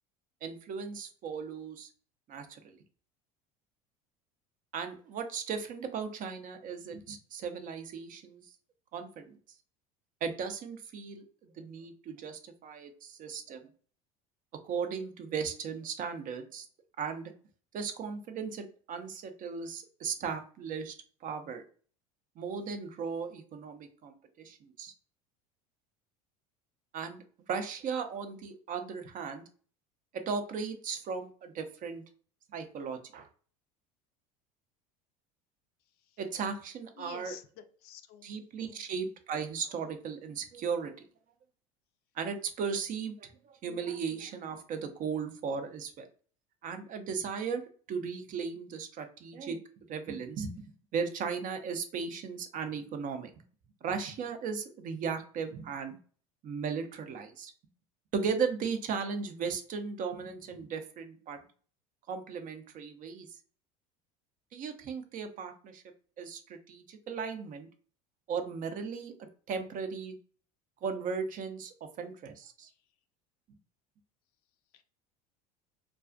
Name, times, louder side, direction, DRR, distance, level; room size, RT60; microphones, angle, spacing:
voice 1, 0.4-1.9 2.3-2.8 4.7-8.4 8.9-9.4 10.2-11.2 11.6-13.6 14.5-16.7 17.0-17.3 17.7-20.9 21.2-21.6 22.4-24.9 26.9-29.4 30.1-32.0 32.5-33.3 36.2-37.4 38.2-40.9 42.1-46.1 46.6-47.6 47.9-49.6 49.9-50.6 50.9-53.3 53.8-56.0 56.4-57.5 58.1-61.4 62.1-63.4 64.5-65.8 66.2-67.7 68.3-69.1 69.5-70.2 70.8-72.7, right 6 dB, 45° right, 7 dB, 0.5 m, -36 dB
voice 2, 37.0-38.3 38.7-38.8 74.7-74.8, left 9 dB, 55° left, 9 dB, 0.4 m, -50 dB
2.3 x 2.3 x 2.4 m, 0.43 s
hypercardioid pair, 85°, 19 cm